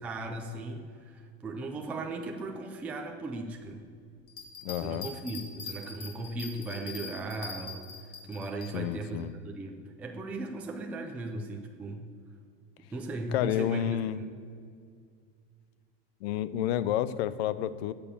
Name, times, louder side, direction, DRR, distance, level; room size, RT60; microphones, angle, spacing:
voice 1, 0.0-3.9 4.8-12.1 12.9-14.3, right 2 dB, 5° right, 3 dB, 0.3 m, -37 dB
sound 1, 4.3-8.7, left 5 dB, 35° left, 1.8 m, -42 dB
voice 2, 4.6-5.1 8.7-9.3 13.3-14.2 16.2-17.9, left 11 dB, 80° left, 16 dB, 0.7 m, -30 dB
11.0 x 6.8 x 8.4 m, 2.1 s
supercardioid pair, 175°, 31 cm